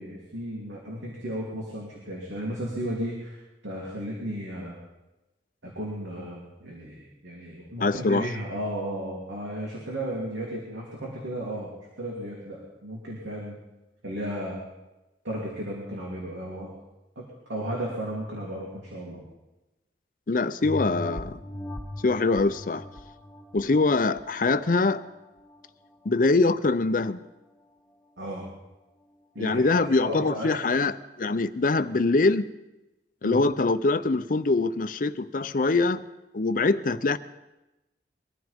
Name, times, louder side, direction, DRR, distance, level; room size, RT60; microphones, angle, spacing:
voice 1, 0.0-3.4 3.6-4.8 5.6-13.6 14.0-14.6 15.2-16.7 17.1-19.2 28.2-28.4 29.3-29.6 30.0-30.5 33.2-33.4, equal, 90° right, -4 dB, 3.1 m, -34 dB
voice 2, 7.8-8.3 20.3-21.4 22.0-22.8 23.5-25.0 26.1-27.2 29.4-32.5 33.2-36.0 36.3-37.2, left 3 dB, 45° left, 13 dB, 0.5 m, -23 dB
sound 1, 20.6-25.6 26.0-26.1, left 1 dB, 15° left, 1.4 m, -39 dB
22.5 x 14.0 x 3.6 m, 1.0 s
head